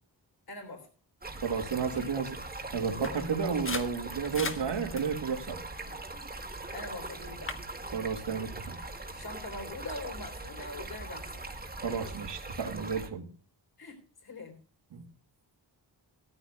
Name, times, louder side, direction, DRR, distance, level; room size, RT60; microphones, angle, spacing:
voice 1, 0.5-0.9 1.9-2.2 5.8-6.0 6.7-7.6 9.1-11.4 13.8-14.6, left 2 dB, 55° left, 3.7 m, -43 dB
Stream, 1.2-13.1, right 2 dB, 20° right, 1.6 m, -41 dB
voice 2, 1.4-2.4 2.7-5.6 7.9-8.8 11.8-13.3 14.9-15.0, right 6 dB, 75° right, 2.1 m, -32 dB
sound 1, 3.0-6.7 7.1-7.6, left 3 dB, 30° left, 1.3 m, -41 dB
17.5 x 14.0 x 2.3 m
wide cardioid pair, 180°, 43 cm